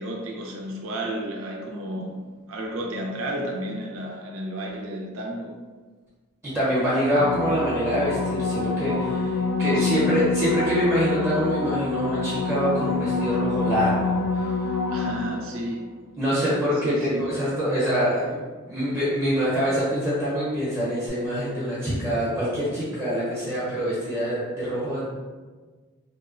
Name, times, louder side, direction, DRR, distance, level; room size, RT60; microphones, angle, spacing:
voice 1, 0.0-5.5 9.7-10.2 14.9-15.8 16.8-17.3, right 1 dB, 65° right, 0 dB, 0.4 m, -32 dB
voice 2, 6.4-14.6 16.2-18.4 18.7-25.1, equal, 10° right, -10 dB, 0.7 m, -25 dB
sound 1, 7.1-15.7 21.1-21.2, left 3 dB, 85° left, 0.3 m, -26 dB
2.8 x 2.1 x 2.4 m, 1.4 s
head